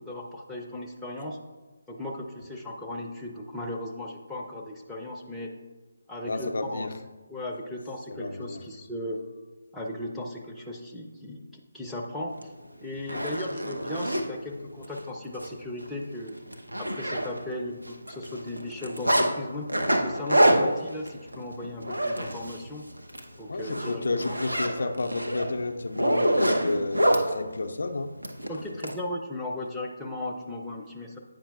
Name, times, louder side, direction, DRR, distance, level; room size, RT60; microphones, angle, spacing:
voice 1, 0.0-1.4 1.9-5.5 6.1-6.9 7.3-9.2 9.7-12.5 12.8-16.4 16.8-19.7 20.0-21.0 21.4-22.9 23.4-24.3 24.8-24.9 28.5-31.2, left 1 dB, 5° left, -3 dB, 0.5 m, -36 dB
voice 2, 6.3-7.0 8.1-8.6 13.1-13.3 20.4-20.8 23.5-28.1, left 3 dB, 60° left, 5 dB, 0.4 m, -31 dB
Zipper (clothing), 12.4-12.5 12.9-14.2 14.8-15.0 15.3-15.5 15.8-15.9 16.3-17.6 17.9-19.3 19.7-22.6 23.0-23.2 23.6-27.2 28.2-28.9, right 1 dB, 90° right, 0.8 m, -26 dB
8.8 x 5.6 x 2.3 m, 1.2 s
figure-of-eight pair, 150°, 0 cm